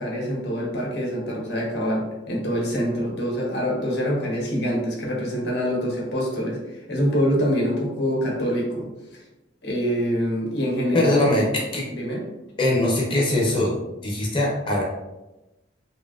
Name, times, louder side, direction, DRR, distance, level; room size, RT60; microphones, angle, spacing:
voice 1, 0.0-6.6 6.9-8.9 9.6-11.3 11.9-12.2, equal, 60° left, -2 dB, 0.8 m, -25 dB
voice 2, 10.9-11.5 11.7-11.8 12.6-13.7 14.0-14.8, left 1 dB, 25° left, -3 dB, 0.7 m, -21 dB
3.2 x 2.7 x 2.3 m, 0.97 s
head